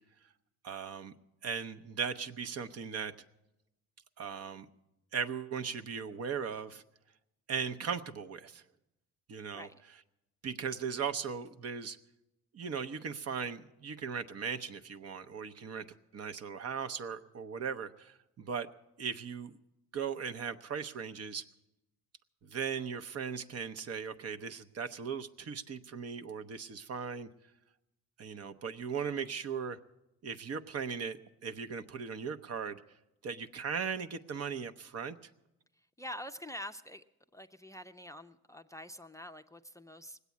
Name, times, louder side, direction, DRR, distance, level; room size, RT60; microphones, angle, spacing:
voice 1, 0.6-1.1 1.4-3.1 4.2-4.7 5.1-6.8 7.5-8.6 9.3-9.7 10.4-12.0 12.5-15.8 16.1-18.7 19.0-19.6 19.9-21.4 22.4-27.3 28.2-29.8 30.2-32.8 33.2-35.2, right 6 dB, 55° right, 9 dB, 0.8 m, -38 dB
voice 2, 36.0-37.0 37.3-40.2, equal, 10° left, 7 dB, 0.5 m, -46 dB
19.0 x 8.2 x 8.4 m, 0.93 s
cardioid pair, 90°, 30 cm